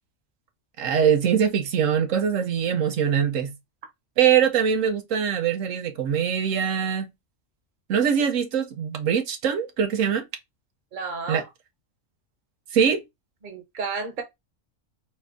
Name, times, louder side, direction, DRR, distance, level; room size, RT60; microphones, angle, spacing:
voice 1, 0.8-3.5 4.2-7.1 7.9-10.2 11.3-11.4 12.7-13.0, right 8 dB, 85° right, 1.1 m, -22 dB
voice 2, 10.9-11.4 13.4-14.2, right 4 dB, 40° right, 1.1 m, -32 dB
4.2 x 2.6 x 3.6 m
omnidirectional pair, 1.3 m